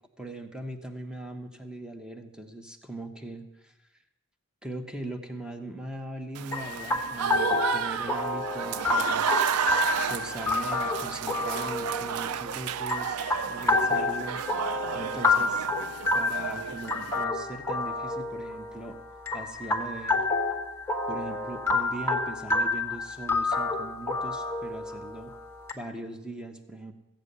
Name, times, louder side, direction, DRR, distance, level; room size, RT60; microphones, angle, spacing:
voice 1, 0.2-3.7 4.6-9.6 10.0-14.4 14.9-15.7 16.1-19.0 19.3-20.2 21.1-25.3 25.7-26.9, right 1 dB, 5° right, 5 dB, 1.1 m, -40 dB
Applause / Crowd, 6.3-17.2, right 8 dB, 85° right, 0.4 m, -32 dB
sound 1, 6.5-25.7, left 2 dB, 10° left, 1.4 m, -29 dB
15.0 x 8.9 x 6.9 m, 0.97 s
head